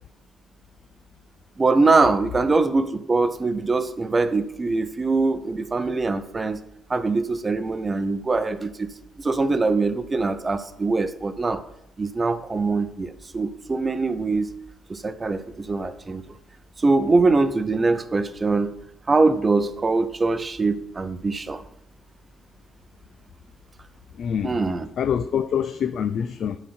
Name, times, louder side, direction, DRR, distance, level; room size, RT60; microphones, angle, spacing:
voice 1, 1.6-6.6 6.9-8.9 9.2-11.6 12.0-14.5 14.9-16.2 16.8-18.8 19.1-21.6 24.4-24.9, right 3 dB, 30° right, 0.6 m, -23 dB
voice 2, 24.2-24.6 25.0-26.6, left 8 dB, 65° left, 0.3 m, -25 dB
10.0 x 4.0 x 4.3 m
cardioid pair, 90°, 0 cm